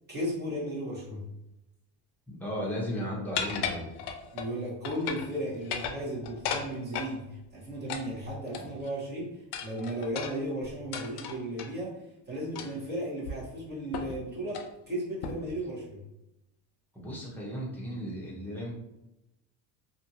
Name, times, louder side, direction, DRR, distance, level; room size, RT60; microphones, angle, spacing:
voice 1, 0.1-1.3 4.3-16.1, right 1 dB, 25° right, -6 dB, 1.2 m, -35 dB
voice 2, 2.3-3.9 8.6-8.7 16.9-18.7, equal, 5° left, -5 dB, 0.8 m, -35 dB
sound 1, 3.4-4.5 4.9-5.3 5.6-7.1 7.9-8.9 9.5-11.7 12.6-12.9 13.3-13.4 13.9-14.2 14.5-14.7 15.2-15.6, left 7 dB, 65° left, 0.5 m, -35 dB
2.6 x 2.6 x 2.8 m, 0.88 s
cardioid pair, 130°, 43 cm